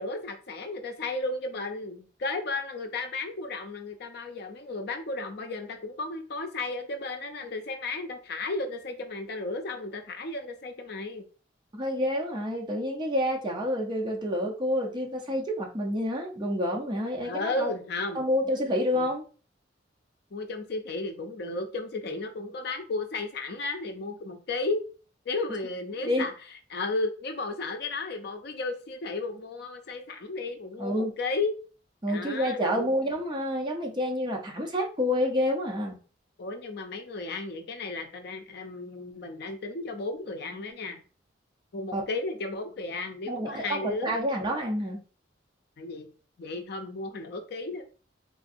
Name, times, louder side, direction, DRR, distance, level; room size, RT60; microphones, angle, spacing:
voice 1, 0.0-11.2 17.2-18.3 18.9-19.1 20.3-24.8 25.3-26.3 26.7-31.5 32.1-32.9 36.4-41.0 41.7-44.1 45.8-46.1 46.4-47.8, left 3 dB, 60° left, 6 dB, 0.5 m, -34 dB
voice 2, 11.7-17.7 18.1-19.2 26.0-26.3 30.8-31.1 32.0-36.0 41.9-42.0 43.3-45.0, equal, 25° right, 0 dB, 0.6 m, -28 dB
3.6 x 2.5 x 2.5 m, 0.37 s
head